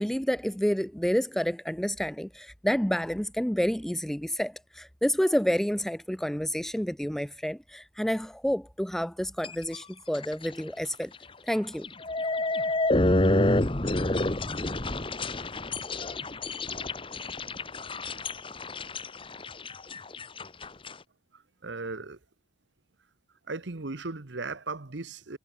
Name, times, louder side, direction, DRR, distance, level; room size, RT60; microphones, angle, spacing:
voice 1, 0.0-11.1 11.4-11.9, equal, ahead, 0.4 m, -29 dB
sound 1, 9.4-9.8 10.1-10.5 10.9-11.0 11.8-20.9, left 2 dB, 25° left, 1.4 m, -28 dB
voice 2, 21.6-22.2 23.5-25.4, right 3 dB, 65° right, 1.2 m, -36 dB
head